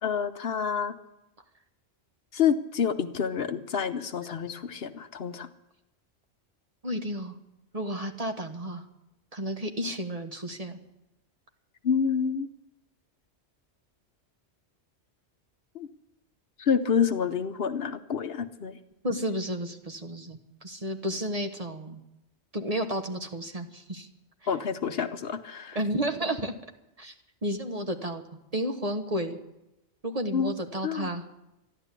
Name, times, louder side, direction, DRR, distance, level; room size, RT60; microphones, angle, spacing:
voice 1, 0.0-1.0 2.3-5.5 11.8-12.5 15.7-15.9 16.6-18.8 24.5-25.8 30.3-30.5 30.8-31.1, left 7 dB, 60° left, 10 dB, 1.0 m, -28 dB
voice 2, 6.8-7.3 7.7-8.8 9.3-10.8 19.0-22.0 22.5-24.1 25.7-26.5 27.0-27.1 27.4-28.2 28.5-29.4 30.0-31.2, equal, 35° right, 5 dB, 1.2 m, -32 dB
13.5 x 11.0 x 8.2 m, 0.90 s
omnidirectional pair, 1.2 m